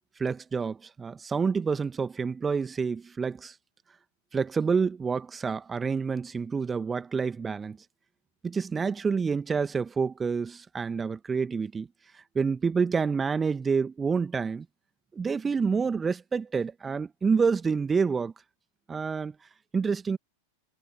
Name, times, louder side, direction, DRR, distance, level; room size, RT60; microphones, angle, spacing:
voice 1, 0.2-3.5 4.3-7.8 8.4-11.9 12.1-14.7 15.1-18.3 18.9-19.4 19.7-20.2, right 5 dB, 15° right, 1.9 m, -28 dB
figure-of-eight pair, 90°, 0 cm